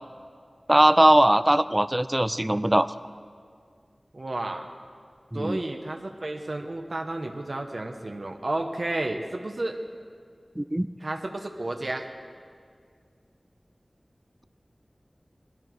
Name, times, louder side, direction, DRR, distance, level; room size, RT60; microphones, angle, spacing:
voice 1, 0.7-2.9 5.3-5.6 10.6-10.9, right 1 dB, 20° right, 13 dB, 0.4 m, -20 dB
voice 2, 4.1-4.7 5.3-9.8 11.0-12.1, right 2 dB, 65° right, 4 dB, 0.9 m, -32 dB
18.0 x 13.5 x 4.6 m, 2.1 s
wide cardioid pair, 45°, 0 cm